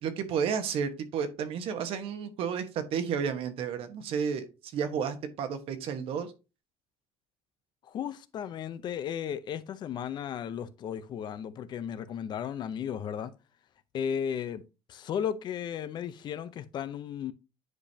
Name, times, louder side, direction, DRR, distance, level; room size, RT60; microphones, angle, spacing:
voice 1, 0.0-6.3, right 7 dB, 60° right, 1.2 m, -32 dB
voice 2, 7.8-13.3 13.9-14.6 14.9-17.3, left 8 dB, 45° left, 0.6 m, -35 dB
9.6 x 5.1 x 2.8 m
cardioid pair, 160°, 11 cm